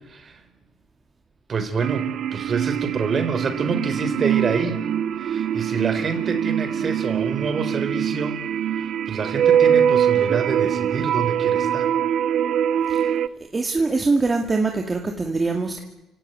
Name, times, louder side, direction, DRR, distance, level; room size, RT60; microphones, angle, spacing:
voice 1, 0.1-0.4 1.5-4.8 5.2-8.4 9.1-11.9, right 5 dB, 40° right, 9 dB, 4.2 m, -27 dB
sound 1, 1.8-13.3, right 9 dB, 65° right, 0.9 m, -23 dB
voice 2, 13.5-15.8, right 3 dB, 25° right, 3 dB, 2.4 m, -23 dB
29.5 x 17.0 x 9.4 m, 1.0 s
cardioid pair, 95°, 0 cm